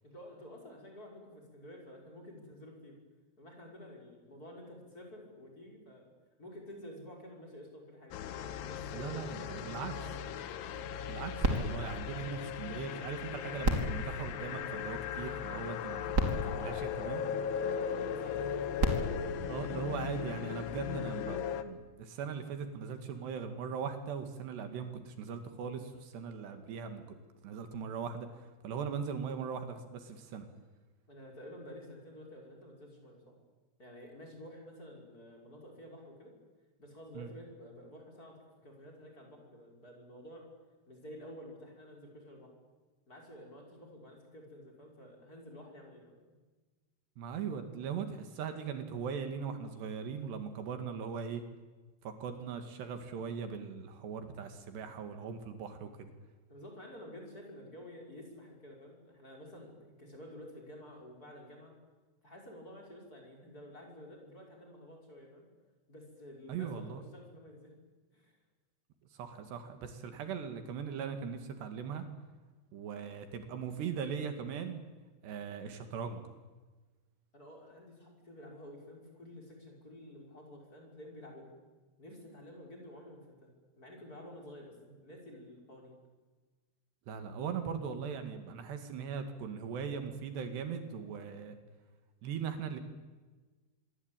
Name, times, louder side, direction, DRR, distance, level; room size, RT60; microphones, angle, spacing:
voice 1, 0.0-3.0 3.4-6.1 6.4-8.2 8.6-10.4 17.8-19.2 19.8-20.0 31.1-33.4 33.8-36.4 36.8-40.5 40.9-42.5 43.1-46.4 56.5-61.8 62.2-65.5 65.9-67.8 68.1-68.4 77.3-81.5 82.0-83.5 83.8-86.0, left 1 dB, 20° left, 1 dB, 6.3 m, -51 dB
sound 1, 8.1-21.6, left 8 dB, 75° left, 3.2 m, -38 dB
voice 2, 8.9-9.9 11.1-17.2 19.5-27.0 27.4-28.3 28.6-30.5 37.2-37.3 47.2-51.4 52.0-56.1 66.5-67.0 69.2-72.1 72.7-74.8 75.2-76.2 87.1-91.6 92.2-92.8, right 6 dB, 75° right, 7 dB, 4.2 m, -39 dB
sound 2, 11.4-13.0 13.6-15.2 15.8-15.9 16.1-17.7 18.5-20.4 21.1-21.2, right 1 dB, 20° right, 2.9 m, -35 dB
26.0 x 23.0 x 9.1 m, 1.3 s
omnidirectional pair, 4.9 m